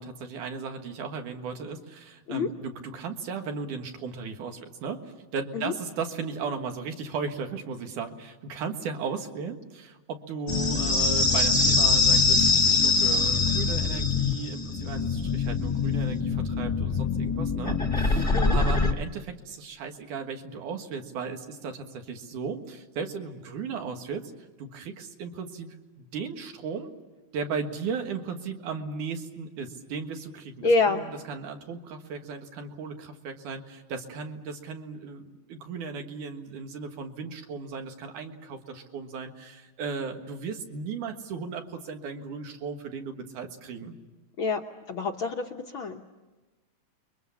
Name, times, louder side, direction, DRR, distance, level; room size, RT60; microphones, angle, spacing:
voice 1, 0.0-5.0 5.3-24.2 24.6-26.9 27.3-44.0, right 5 dB, 80° right, 5 dB, 3.1 m, -36 dB
sound 1, 10.5-18.9, left 4 dB, 15° left, 1.2 m, -23 dB
voice 2, 30.6-31.0 44.4-46.0, left 3 dB, 65° left, 2 dB, 1.3 m, -27 dB
29.0 x 23.0 x 7.1 m, 1.2 s
omnidirectional pair, 3.5 m